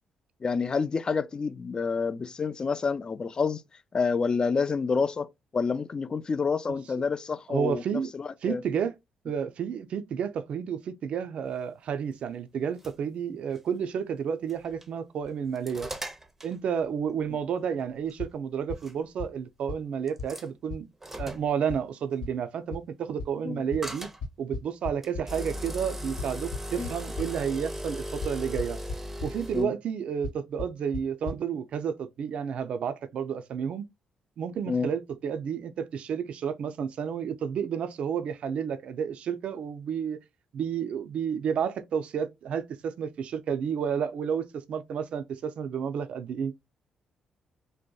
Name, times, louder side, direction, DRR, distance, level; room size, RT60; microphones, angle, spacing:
voice 1, 0.4-3.6 3.9-7.8 8.1-8.6 23.4-23.6 26.8-26.9 29.5-29.7 34.7-34.9, left 5 dB, 40° left, 0.3 m, -28 dB
voice 2, 7.5-8.1 8.4-8.9 9.2-15.9 16.4-20.9 21.2-24.1 24.4-28.8 29.2-33.8 34.4-40.2 40.5-46.5, right 7 dB, 65° right, 0.3 m, -31 dB
sound 1, 12.5-12.9 13.5-13.6 14.5-14.8 15.2-16.5 18.1-18.2 18.8-18.9 20.1-20.5 21.0-21.5 23.8-24.2 25.0-29.6, equal, 15° right, 0.6 m, -37 dB
sound 2, 18.2-18.3 18.7-18.8 19.2-19.3 19.7-19.8 20.2-20.3 20.7-20.8 21.2-21.3 21.7-21.8 22.2-22.3 22.7-22.8 23.2-23.3 23.7-23.8 24.2-25.2 26.2-27.3 28.2-28.3 28.6-28.9 29.2-29.3 30.2-30.3 30.6-30.7 30.9-31.0 31.2-31.4, left 4 dB, 75° left, 1.1 m, -34 dB
2.6 x 2.1 x 2.2 m
supercardioid pair, 55°, 2 cm